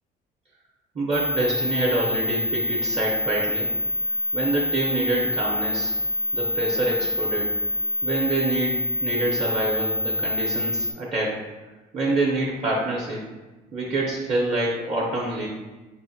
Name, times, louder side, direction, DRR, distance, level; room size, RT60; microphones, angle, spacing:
voice 1, 0.9-3.7 4.3-5.9 6.3-7.5 8.0-11.4 11.9-13.2 13.7-15.5, right 2 dB, 40° right, -4 dB, 0.8 m, -26 dB
sound 1, 1.1-10.9, left 2 dB, 5° left, 0.4 m, -26 dB
5.5 x 2.1 x 2.7 m, 1.2 s
cardioid pair, 110°, 17 cm